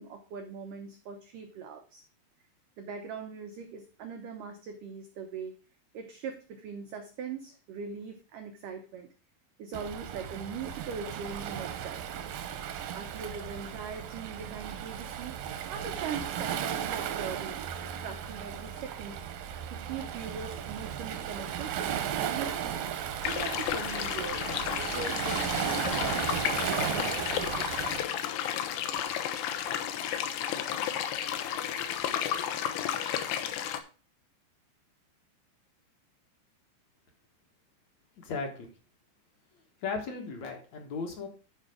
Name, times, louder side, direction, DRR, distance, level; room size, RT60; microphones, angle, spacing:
voice 1, 0.0-2.0 2.8-5.5 5.9-9.1 9.6-12.0 12.9-19.3 19.7-21.8 22.2-22.8 23.2-28.1, right 6 dB, 90° right, 5 dB, 1.8 m, -41 dB
Waves surf, 9.7-28.0, right 9 dB, 75° right, 2.2 m, -35 dB
sound 1, 23.2-33.8, left 10 dB, 75° left, 3.0 m, -32 dB
voice 2, 38.2-38.7 39.8-41.3, left 4 dB, 60° left, 3 dB, 1.9 m, -36 dB
11.5 x 5.0 x 4.9 m, 0.37 s
omnidirectional pair, 5.2 m